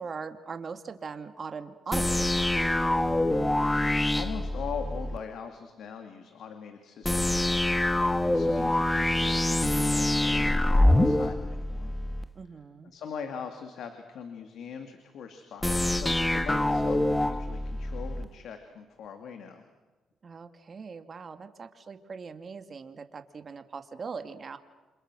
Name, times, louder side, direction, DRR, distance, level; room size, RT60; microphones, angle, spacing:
voice 1, 0.0-2.6 12.3-12.9 20.2-24.6, right 5 dB, 40° right, 8 dB, 2.2 m, -40 dB
sound 1, 1.9-5.2 7.0-12.3 15.6-18.3, left 1 dB, 10° left, 1.2 m, -25 dB
voice 2, 3.7-7.4 8.3-11.9 12.8-19.6, left 6 dB, 70° left, 6 dB, 2.6 m, -41 dB
28.5 x 27.5 x 6.3 m, 1.2 s
cardioid pair, 90°, 0 cm